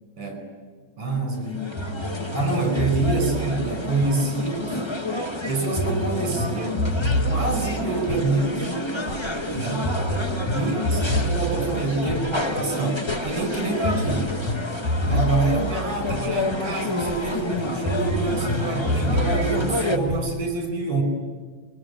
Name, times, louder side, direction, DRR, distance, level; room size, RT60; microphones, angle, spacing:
voice 1, 0.2-0.5 1.0-1.7 2.3-4.8 5.5-6.9 7.3-8.7 9.5-9.9 10.5-14.3 15.0-21.0, right 2 dB, 45° right, 5 dB, 6.1 m, -26 dB
sound 1, 1.3-20.0, left 1 dB, 30° left, 0.4 m, -30 dB
sound 2, 1.8-4.9 5.8-20.5, equal, 85° left, 7.6 m, -28 dB
23.5 x 23.0 x 9.8 m, 1.5 s
omnidirectional pair, 3.3 m